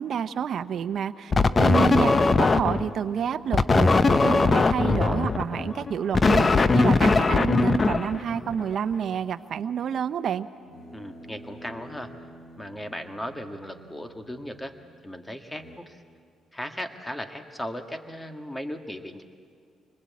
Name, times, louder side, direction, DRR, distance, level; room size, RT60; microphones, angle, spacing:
voice 1, 0.0-1.3 1.6-10.5, right 8 dB, 60° right, 11 dB, 0.8 m, -29 dB
sound 1, 1.3-8.6 10.6-14.8 15.4-15.8, equal, 55° left, 3.4 m, -48 dB
sound 2, 1.3-2.9 3.5-8.7, left 3 dB, 30° left, 0.7 m, -20 dB
voice 2, 1.6-2.0 10.9-12.1 12.6-14.8 15.0-16.0 16.5-19.2, equal, 10° left, 6 dB, 1.7 m, -37 dB
25.0 x 20.5 x 8.5 m, 2.2 s
cardioid pair, 90°, 0 cm